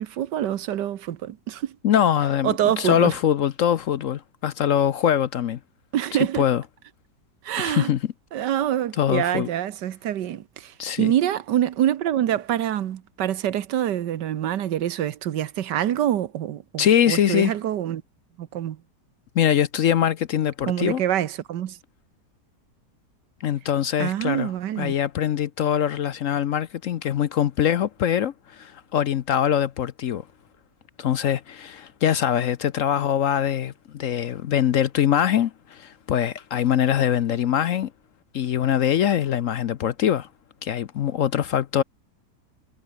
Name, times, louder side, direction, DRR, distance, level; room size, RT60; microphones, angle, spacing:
voice 1, 0.0-1.8 2.4-3.1 5.9-6.4 7.4-7.9 8.3-18.0 18.4-18.8 20.7-21.8 24.0-24.9, right 11 dB, 85° right, 1.6 m, -26 dB
voice 2, 1.8-5.6 6.4-6.6 7.6-8.0 9.0-9.5 10.8-11.1 16.8-17.5 19.3-21.0 23.4-24.5 24.8-30.2 31.0-37.9 38.3-40.3 40.6-41.8, left 9 dB, 60° left, 0.9 m, -23 dB
omnidirectional pair, 1.8 m